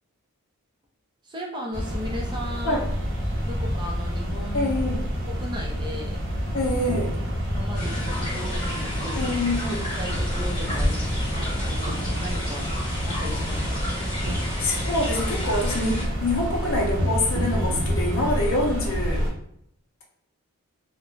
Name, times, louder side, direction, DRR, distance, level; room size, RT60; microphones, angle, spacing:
voice 1, 1.2-2.8 3.4-4.7 5.3-6.2 7.4-9.3 10.0-12.7 13.1-13.8 19.0-19.3, equal, 20° right, -1 dB, 0.5 m, -36 dB
sound 1, 1.7-19.3, equal, 55° right, 0.7 m, -28 dB
voice 2, 4.5-5.0 6.5-7.2 9.2-9.9 14.3-19.2, left 1 dB, 65° left, -1 dB, 0.6 m, -26 dB
sound 2, 7.7-16.1, left 1 dB, 20° left, 0.9 m, -31 dB
2.5 x 2.1 x 3.0 m, 0.71 s
head